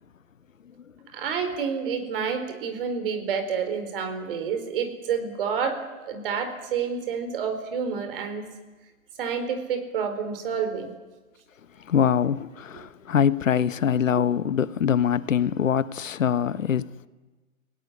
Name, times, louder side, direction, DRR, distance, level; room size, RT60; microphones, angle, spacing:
voice 1, 1.1-8.5 9.2-10.9, right 6 dB, 40° right, 4.5 m, -29 dB
voice 2, 11.9-17.1, left 8 dB, 70° left, 1.2 m, -23 dB
29.5 x 18.0 x 10.0 m
hypercardioid pair, 155°, 41 cm